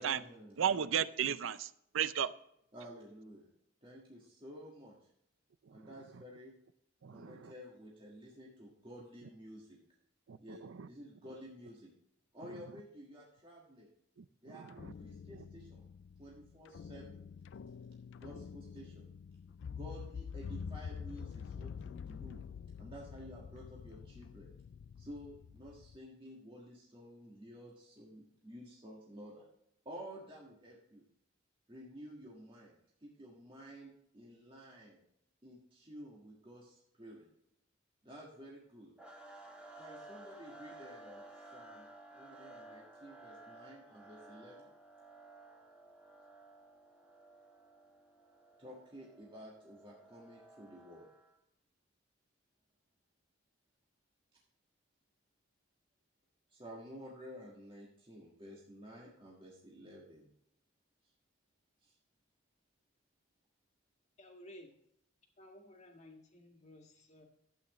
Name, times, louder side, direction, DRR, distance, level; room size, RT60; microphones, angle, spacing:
voice 1, 0.0-0.7 2.7-3.5 3.8-5.1 5.7-6.5 7.1-9.8 10.4-11.9 12.3-13.9 14.4-15.8 16.2-17.2 18.1-19.0 19.7-22.4 22.8-24.5 25.0-29.5 29.9-31.0 31.7-32.7 33.0-35.0 35.4-37.3 38.0-38.9 39.8-41.9 42.1-44.7 48.6-51.1 56.5-60.3 61.8-61.9, equal, 25° right, -4 dB, 1.7 m, -52 dB
voice 2, 0.6-1.7 1.9-2.3 7.0-7.4 10.3-10.4 10.8-10.9 14.8-14.9, right 8 dB, 80° right, 16 dB, 0.5 m, -33 dB
sound 1, 14.7-26.0, left 6 dB, 60° left, 0.3 m, -47 dB
sound 2, 39.0-51.3, right 2 dB, 5° right, 1.7 m, -55 dB
voice 3, 64.2-64.7 65.4-67.2, left 1 dB, 35° left, 1 dB, 1.9 m, -55 dB
12.5 x 8.6 x 3.1 m, 0.75 s
head